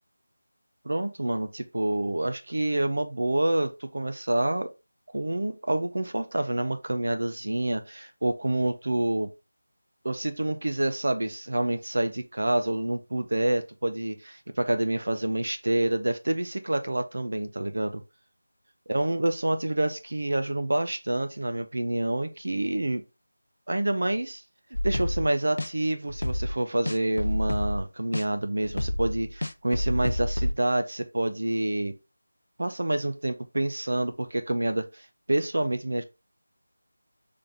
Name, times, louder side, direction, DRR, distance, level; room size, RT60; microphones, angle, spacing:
voice 1, 0.8-4.7 5.1-9.3 10.0-18.0 18.9-23.0 23.7-24.4 24.8-31.9 32.6-36.0, right 1 dB, 60° right, 0.6 m, -27 dB
sound 1, 24.7-25.3 25.6-25.7 26.1-26.5 26.9-27.8 28.1-28.2 28.6-30.5, left 1 dB, 80° left, 0.4 m, -28 dB
3.9 x 3.3 x 3.3 m
figure-of-eight pair, 180°, 0 cm